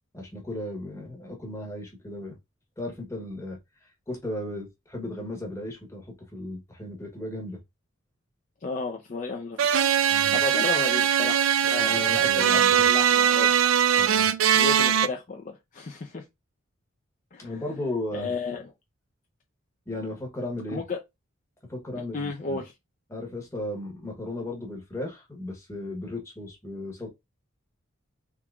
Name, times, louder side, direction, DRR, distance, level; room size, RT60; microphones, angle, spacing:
voice 1, 0.1-2.4 2.8-3.6 4.1-7.6 10.1-10.4 11.8-12.7 14.0-14.3 17.4-18.3 19.9-20.8 21.7-22.6 23.1-27.1, left 1 dB, 15° left, 0.9 m, -35 dB
voice 2, 8.6-9.8 10.3-13.5 14.5-16.3 17.3-17.6 18.1-18.7 20.7-21.0 22.1-22.7, left 3 dB, 35° left, 0.4 m, -33 dB
sound 1, 9.6-15.1, right 9 dB, 70° right, 0.3 m, -21 dB
3.5 x 2.9 x 2.3 m
head